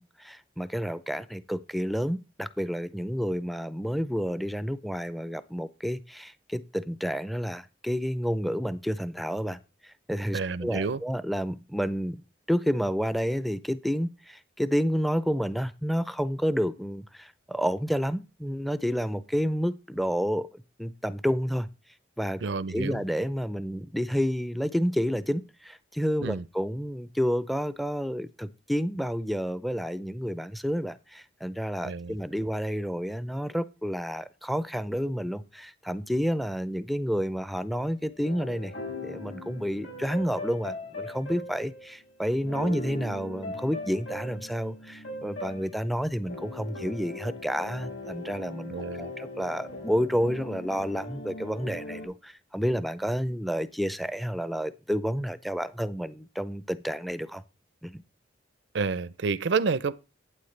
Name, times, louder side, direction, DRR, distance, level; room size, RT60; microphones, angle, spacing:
voice 1, 0.0-12.2 12.5-21.7 22.2-22.4 22.7-38.7 39.0-57.4 57.8-58.0, equal, ahead, 0.4 m, -30 dB
voice 2, 10.3-11.0 22.4-23.0 26.2-26.5 31.8-32.2 48.7-49.1 58.7-59.9, right 4 dB, 65° right, 0.5 m, -29 dB
sound 1, 37.7-52.1, left 1 dB, 70° left, 5.0 m, -40 dB
11.5 x 9.1 x 3.3 m
head